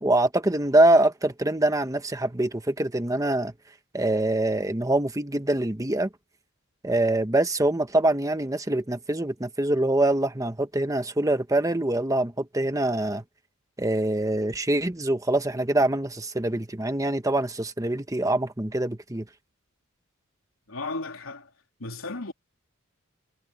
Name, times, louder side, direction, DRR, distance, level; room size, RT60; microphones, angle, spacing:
voice 1, 0.0-3.5 3.9-6.1 6.8-13.2 13.8-19.3, right 1 dB, 15° right, 1.2 m, -24 dB
voice 2, 20.7-21.5 21.8-22.3, left 2 dB, 85° left, 3.4 m, -34 dB
head